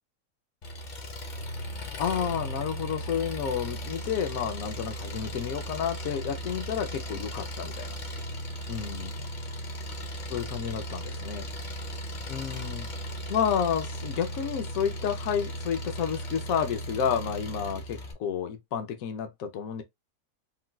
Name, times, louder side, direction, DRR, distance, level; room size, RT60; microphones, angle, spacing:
Engine, 0.6-18.1, equal, 45° left, 0.6 m, -37 dB
voice 1, 2.0-7.9 8.7-9.1 10.3-11.5 12.3-12.9 13.3-19.8, left 8 dB, 70° left, 1.0 m, -30 dB
3.8 x 2.3 x 2.2 m
omnidirectional pair, 1.6 m